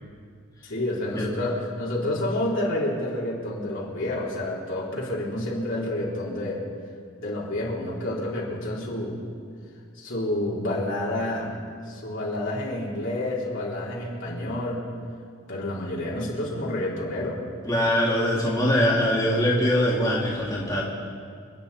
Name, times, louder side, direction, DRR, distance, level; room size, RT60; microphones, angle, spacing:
voice 1, 0.6-6.6 7.2-9.2 9.9-11.6 11.9-14.8 15.5-17.4, left 1 dB, 65° left, -5 dB, 3.6 m, -29 dB
voice 2, 17.7-20.8, equal, 20° left, -6 dB, 2.5 m, -22 dB
28.5 x 9.6 x 4.2 m, 2.2 s
head